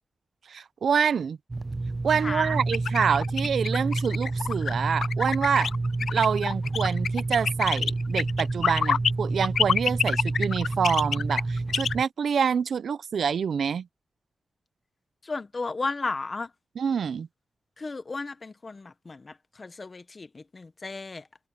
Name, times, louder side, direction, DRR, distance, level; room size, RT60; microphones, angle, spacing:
voice 1, 0.5-1.4 2.0-5.7 6.1-13.9 16.8-17.3, right 7 dB, 90° right, 0.5 m, -26 dB
sound 1, 1.5-12.0, right 2 dB, 30° right, 0.4 m, -29 dB
voice 2, 2.2-2.6 15.2-16.5 17.8-21.3, left 3 dB, 40° left, 1.1 m, -34 dB
sound 2, 2.7-9.1 9.4-11.9, left 7 dB, 85° left, 0.3 m, -27 dB
wide cardioid pair, 90°, 0 cm